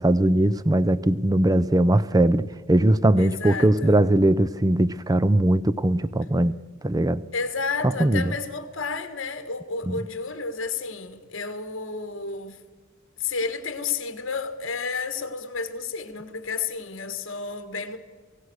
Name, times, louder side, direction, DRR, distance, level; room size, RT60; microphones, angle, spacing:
voice 1, 0.0-6.5 6.8-7.2 8.0-8.3 9.9-10.0, right 1 dB, 20° right, 0.5 m, -20 dB
voice 2, 3.2-4.0 7.3-12.6 13.2-18.0, left 4 dB, 65° left, 1.8 m, -31 dB
28.0 x 17.0 x 6.5 m
head